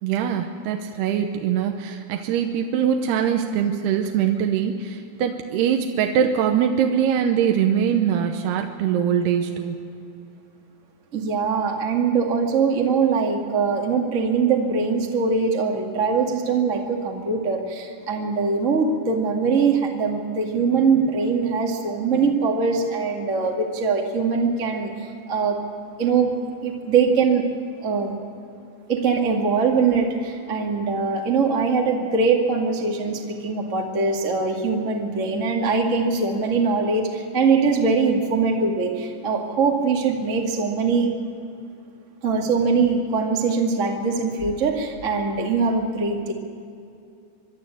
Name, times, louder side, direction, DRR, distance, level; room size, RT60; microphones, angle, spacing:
voice 1, 0.0-9.8, right 8 dB, 75° right, 4 dB, 2.6 m, -22 dB
voice 2, 11.1-24.9 25.3-25.6 26.0-26.3 26.6-27.4 27.8-28.1 28.9-41.1 42.2-46.3, right 4 dB, 50° right, 0 dB, 0.9 m, -22 dB
25.0 x 12.0 x 9.1 m, 2.6 s
omnidirectional pair, 5.4 m